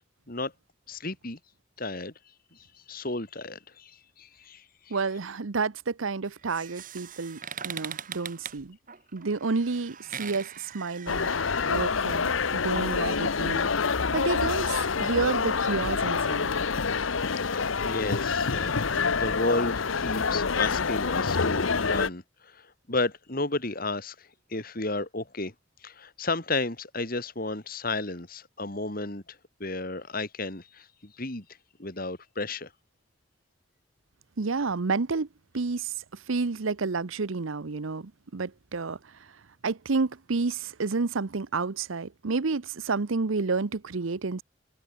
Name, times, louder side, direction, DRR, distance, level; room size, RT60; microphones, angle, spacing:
voice 1, 0.9-1.4 1.8-2.1 2.5-2.6 2.9-5.0 17.5-18.8 19.1-25.5 25.8-29.2 29.6-31.4 31.8-32.7, left 2 dB, 45° left, 2.8 m, -33 dB
voice 2, 4.9-8.8 9.1-11.3 11.7-13.7 14.1-16.5 34.4-35.3 35.5-35.9 36.3-39.0 39.6-44.4, right 4 dB, 75° right, 0.8 m, -30 dB
sound 1, 6.2-11.8, right 8 dB, 40° right, 2.2 m, -41 dB
sound 2, 11.1-22.1, left 5 dB, 75° left, 0.9 m, -27 dB
head